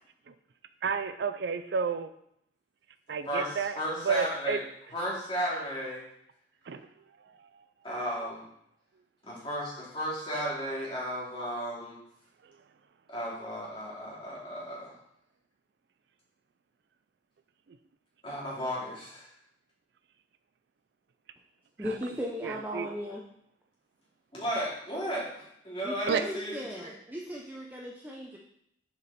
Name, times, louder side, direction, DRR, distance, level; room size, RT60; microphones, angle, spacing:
voice 1, 0.8-2.1 3.1-3.8 4.0-4.6 6.7-6.8 7.3-7.5 21.9-22.0 22.4-22.9 26.1-26.2, right 5 dB, 65° right, 10 dB, 0.4 m, -31 dB
voice 2, 3.3-4.6 4.9-6.0 7.8-8.5 9.2-12.0 13.1-14.9 18.2-19.3 24.3-26.6 26.8-26.9, equal, 25° left, -6 dB, 2.6 m, -34 dB
voice 3, 21.8-23.2 25.8-28.4, equal, 10° right, -3 dB, 0.6 m, -37 dB
6.7 x 5.1 x 4.2 m, 0.74 s
head